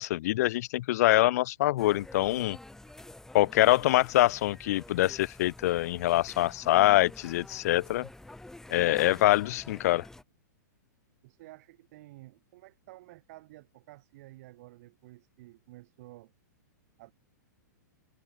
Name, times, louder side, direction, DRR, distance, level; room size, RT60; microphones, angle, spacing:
voice 1, 0.0-2.6 3.3-8.1 8.7-10.1, left 16 dB, 55° left, 0.9 m, -24 dB
sound 1, 1.8-10.2, left 2 dB, 5° left, 7.5 m, -48 dB
voice 2, 11.2-16.3 17.0-17.1, right 18 dB, 50° right, 5.0 m, -52 dB
hypercardioid pair, 120°, 10 cm